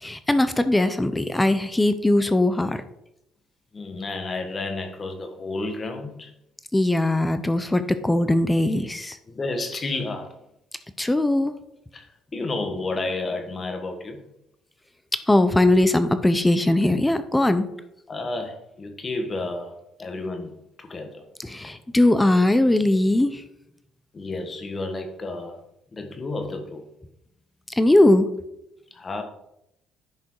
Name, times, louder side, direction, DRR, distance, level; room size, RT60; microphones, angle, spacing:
voice 1, 0.0-2.8 6.7-9.2 11.0-11.5 15.3-17.7 21.4-23.4 27.8-28.3, left 1 dB, 5° left, 11 dB, 0.7 m, -20 dB
voice 2, 3.7-6.3 9.3-10.3 11.9-12.1 12.3-14.2 18.1-19.7 20.0-21.2 24.1-25.6 25.9-26.8 28.9-29.2, left 2 dB, 25° left, 5 dB, 1.4 m, -31 dB
10.5 x 6.2 x 4.7 m, 0.82 s
cardioid pair, 160°, 0 cm